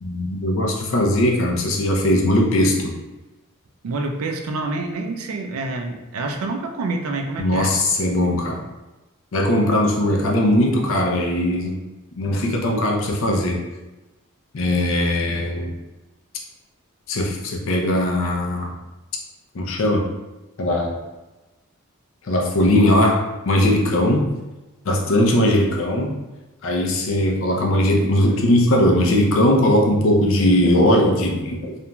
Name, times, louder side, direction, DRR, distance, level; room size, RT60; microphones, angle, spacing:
voice 1, 0.0-2.9 7.4-8.6 9.3-11.7 12.2-13.6 14.5-15.7 17.1-18.7 19.5-20.0 20.6-21.0 22.2-24.3 24.8-26.1 26.6-31.8, left 1 dB, 65° left, 0 dB, 0.5 m, -19 dB
voice 2, 3.8-7.7, right 3 dB, 85° right, 4 dB, 0.4 m, -27 dB
2.9 x 2.5 x 2.2 m, 1.1 s
head